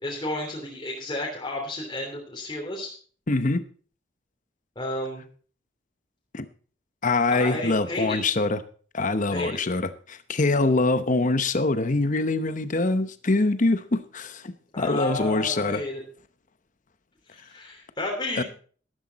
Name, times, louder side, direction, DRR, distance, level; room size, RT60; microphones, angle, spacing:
voice 1, 0.0-2.9 4.7-5.2 7.3-8.2 9.3-9.6 14.7-16.0 17.3-18.4, left 1 dB, 25° left, -2 dB, 3.2 m, -32 dB
voice 2, 3.3-3.6 6.3-6.4 7.0-8.6 8.9-15.8 18.4-18.5, left 2 dB, 40° left, 12 dB, 0.8 m, -24 dB
13.0 x 12.5 x 4.1 m, 0.42 s
head